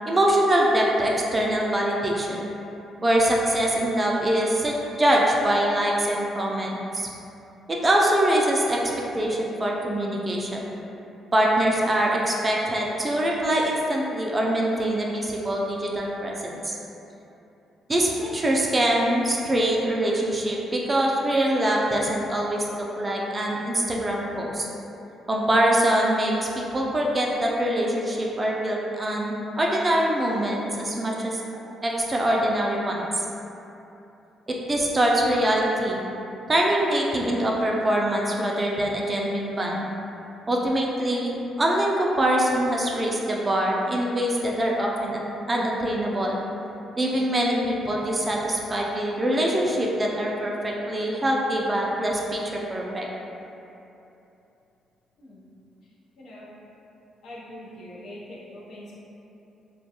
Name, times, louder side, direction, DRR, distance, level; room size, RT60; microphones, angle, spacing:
voice 1, 0.1-2.5 3.0-7.1 7.7-8.8 9.1-10.7 11.3-16.7 17.9-24.7 25.3-31.4 31.8-33.1 34.6-36.0 36.5-39.9 40.5-45.2 45.5-46.4 47.0-53.1, right 1 dB, 25° right, -2 dB, 0.3 m, -24 dB
voice 2, 57.2-59.0, left 1 dB, 70° left, -6 dB, 0.6 m, -42 dB
2.3 x 2.2 x 2.8 m, 2.9 s
cardioid pair, 90°, 0 cm